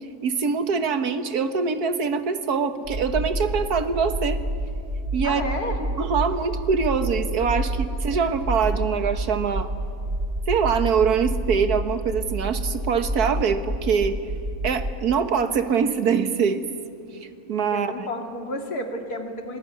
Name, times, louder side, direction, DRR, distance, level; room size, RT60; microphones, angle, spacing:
voice 1, 0.2-4.4 5.1-5.4 6.0-9.7 10.5-14.2 14.6-16.7 17.5-18.1, right 6 dB, 85° right, 9 dB, 1.9 m, -23 dB
sound 1, 2.8-14.9, right 1 dB, 35° right, 2.7 m, -29 dB
voice 2, 5.2-5.8 17.7-19.6, left 1 dB, 80° left, 3 dB, 3.0 m, -31 dB
26.5 x 20.0 x 9.5 m, 2.4 s
omnidirectional pair, 1.6 m